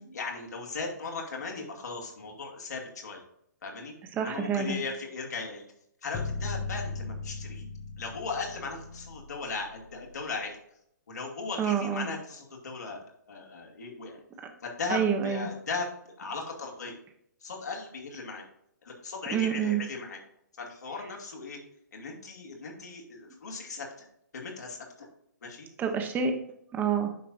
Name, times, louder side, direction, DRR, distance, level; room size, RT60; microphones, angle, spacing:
voice 1, 0.1-3.2 3.6-5.6 6.0-7.7 8.0-10.6 11.1-14.2 14.6-15.9 16.2-17.0 17.4-18.4 18.8-20.2 20.6-21.6 21.9-24.1 24.3-25.1 25.4-25.7, left 4 dB, 65° left, 0 dB, 2.2 m, -37 dB
voice 2, 4.1-4.8 11.6-12.1 14.9-15.5 19.3-19.8 25.8-26.3 26.7-27.1, right 7 dB, 15° right, 5 dB, 1.1 m, -28 dB
sound 1, 6.1-10.2, left 4 dB, 30° left, 1.0 m, -37 dB
9.3 x 5.8 x 2.6 m, 0.74 s
figure-of-eight pair, 125°, 10 cm